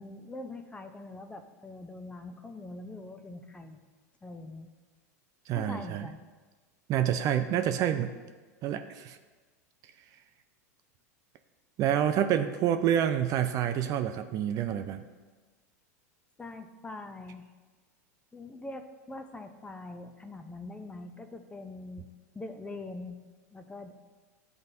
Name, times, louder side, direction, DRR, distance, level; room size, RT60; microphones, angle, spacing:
voice 1, 0.0-3.8 4.2-4.7 5.5-6.2 16.4-17.5 18.3-22.1 22.3-23.2 23.5-23.9, left 2 dB, 10° left, 7 dB, 0.6 m, -43 dB
voice 2, 5.5-6.1 6.9-8.1 8.6-9.2 11.8-15.0, right 10 dB, 40° right, 8 dB, 0.4 m, -28 dB
12.0 x 4.0 x 2.7 m, 1.3 s
hypercardioid pair, 95°, 9 cm